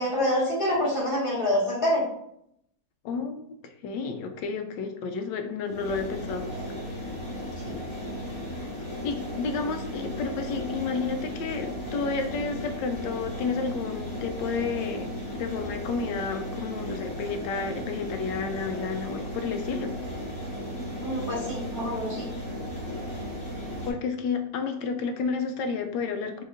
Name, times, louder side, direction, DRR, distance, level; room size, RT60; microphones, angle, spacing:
voice 1, 0.0-2.0 7.6-7.7 21.0-22.2, left 1 dB, 15° left, -7 dB, 1.8 m, -26 dB
voice 2, 3.0-6.5 9.0-19.9 23.9-26.4, left 5 dB, 85° left, 7 dB, 1.2 m, -31 dB
sound 1, 5.6-23.9, equal, 50° left, 2.1 m, -35 dB
6.1 x 2.8 x 2.6 m, 0.73 s
omnidirectional pair, 1.9 m